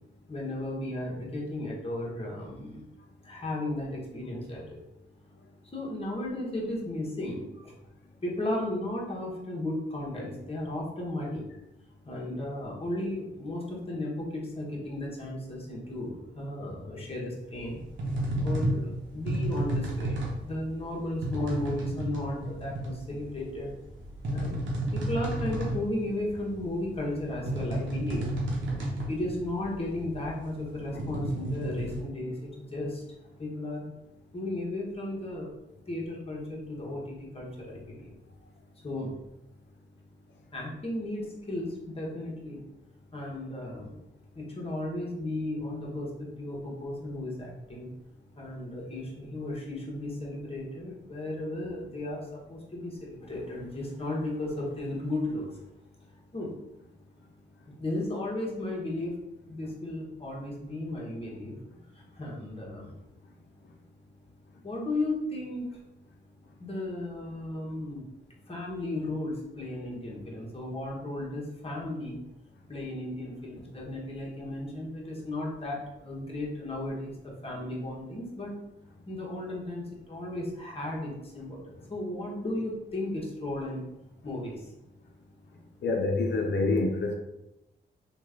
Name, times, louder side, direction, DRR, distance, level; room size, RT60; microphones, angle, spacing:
voice 1, 0.3-2.8 3.2-4.8 5.7-7.7 8.2-11.4 12.0-17.8 18.4-23.7 24.3-24.6 24.9-28.3 29.1-33.0 33.4-33.9 34.3-35.5 35.9-38.2 38.8-39.1 40.5-42.6 43.1-43.9 44.3-47.9 48.4-55.5 56.3-56.5 57.8-61.5 61.9-62.9 64.6-65.7 66.6-68.1 68.5-72.2 72.7-78.5 79.1-83.8 84.2-84.6, left 1 dB, 30° left, -2 dB, 1.2 m, -35 dB
sound 1, 17.5-32.0, right 1 dB, 85° right, 0.8 m, -32 dB
voice 2, 85.8-87.2, left 3 dB, 65° left, 3 dB, 0.7 m, -27 dB
3.1 x 2.5 x 3.6 m, 0.89 s
supercardioid pair, 55°, 19 cm